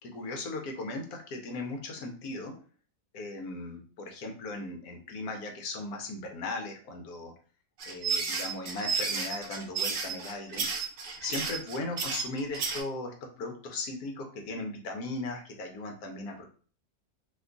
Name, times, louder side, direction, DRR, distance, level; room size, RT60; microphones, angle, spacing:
voice 1, 0.0-2.5 3.1-7.3 7.8-10.7 11.2-16.4, left 2 dB, 85° left, 3 dB, 1.2 m, -37 dB
sound 1, 7.8-12.8, right 5 dB, 55° right, 0.6 m, -32 dB
2.9 x 2.3 x 3.7 m, 0.41 s
omnidirectional pair, 1.6 m